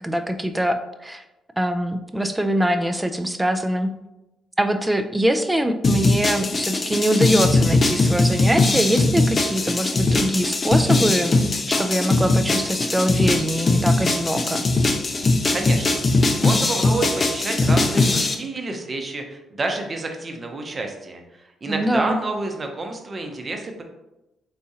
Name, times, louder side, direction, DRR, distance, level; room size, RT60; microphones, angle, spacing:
voice 1, 0.0-1.2 1.6-3.9 4.6-11.4 11.7-14.6 21.7-22.2, right 1 dB, 10° right, 7 dB, 0.5 m, -23 dB
sound 1, 5.8-18.4, left 2 dB, 40° left, 0.6 m, -20 dB
voice 2, 15.5-16.0 16.4-23.8, right 2 dB, 40° right, 3 dB, 0.8 m, -29 dB
4.2 x 3.5 x 2.8 m, 0.96 s
supercardioid pair, 55°, 0 cm